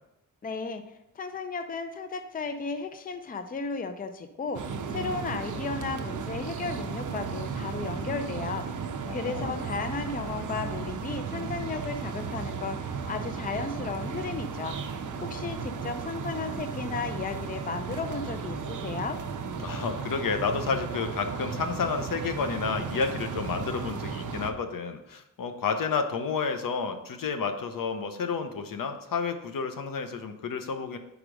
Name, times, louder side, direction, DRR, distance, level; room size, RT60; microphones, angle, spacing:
voice 1, 0.4-0.8 1.2-4.6 4.9-14.8 15.2-19.2, left 4 dB, 25° left, 8 dB, 0.5 m, -34 dB
sound 1, 4.5-24.5, right 5 dB, 65° right, 0.7 m, -35 dB
voice 2, 9.0-9.6 19.6-31.0, left 5 dB, 70° left, 7 dB, 0.8 m, -31 dB
5.0 x 4.9 x 6.2 m, 0.89 s
wide cardioid pair, 130°, 34 cm